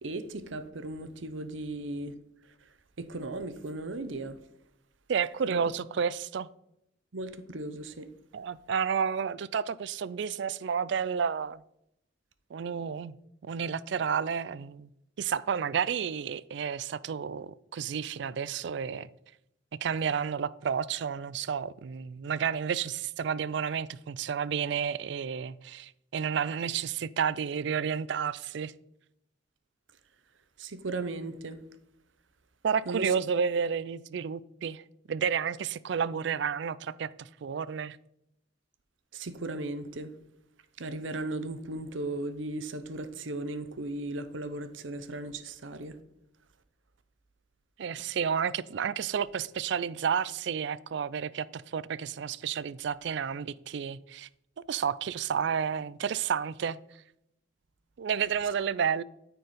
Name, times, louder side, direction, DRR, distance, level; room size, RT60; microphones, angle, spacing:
voice 1, 0.0-2.1 3.0-4.4 7.1-8.0 30.6-31.6 32.9-33.0 39.1-40.1 40.8-45.9, right 2 dB, 80° right, 0.8 m, -36 dB
voice 2, 5.1-6.5 8.3-11.6 12.5-13.1 13.4-14.9 15.2-19.1 19.8-28.7 32.6-34.8 35.1-38.0 47.8-54.3 54.7-56.8 58.0-59.0, right 7 dB, 65° right, 0.4 m, -31 dB
13.0 x 4.5 x 5.1 m
head